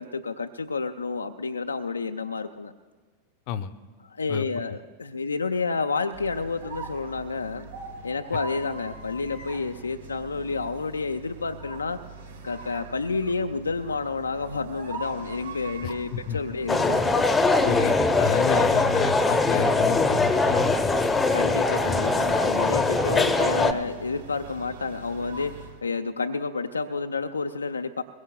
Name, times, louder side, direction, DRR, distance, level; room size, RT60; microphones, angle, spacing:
voice 1, 0.0-2.7 4.1-7.7 8.0-12.0 12.4-17.2 21.3-28.0, left 4 dB, 75° left, 7 dB, 0.5 m, -30 dB
sound 1, 6.1-25.8, right 3 dB, 65° right, 1.9 m, -42 dB
voice 2, 15.8-16.4 17.6-21.2 21.7-21.8, left 9 dB, 45° left, 13 dB, 0.7 m, -30 dB
sound 2, 16.7-23.7, left 3 dB, 15° left, 0.9 m, -22 dB
22.0 x 21.5 x 2.3 m, 1.4 s
figure-of-eight pair, 90°, 0 cm